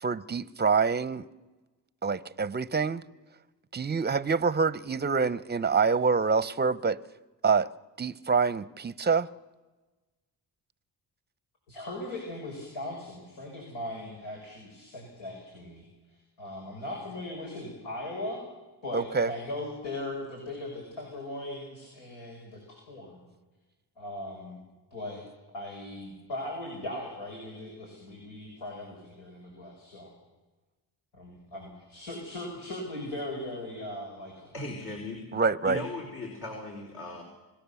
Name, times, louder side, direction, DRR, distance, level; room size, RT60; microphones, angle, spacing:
voice 1, 0.0-1.2 2.0-3.0 3.7-7.0 7.4-7.7 8.0-9.3 18.9-19.3 35.3-35.8, right 5 dB, 25° right, 0.7 m, -26 dB
voice 2, 11.7-15.8 16.4-18.4 18.8-23.2 24.0-24.6 24.9-25.2 25.5-30.1 31.1-34.5, left 1 dB, 80° left, 6.3 m, -39 dB
voice 3, 34.5-35.2 35.6-37.2, left 2 dB, 55° left, 4.4 m, -37 dB
26.0 x 17.5 x 7.0 m
cardioid pair, 80°, 43 cm